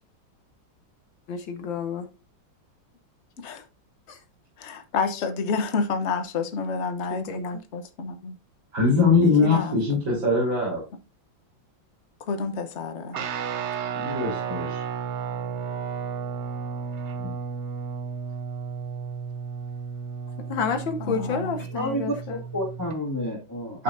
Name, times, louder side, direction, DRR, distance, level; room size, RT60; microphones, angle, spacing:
voice 1, 1.3-2.1 4.1-4.2 7.1-7.4 20.5-22.4, left 5 dB, 85° left, 2.1 m, -30 dB
voice 2, 4.6-8.3 9.2-9.8 10.1-10.2 12.2-13.2 21.0-21.6, left 4 dB, 45° left, 1.1 m, -29 dB
voice 3, 8.7-10.8 13.7-14.8 23.7-23.8, left 4 dB, 85° right, 4.8 m, -22 dB
Guitar, 13.1-23.0, right 6 dB, 55° right, 0.8 m, -33 dB
voice 4, 21.7-23.8, equal, 10° left, 2.0 m, -30 dB
11.5 x 5.8 x 2.7 m
omnidirectional pair, 2.0 m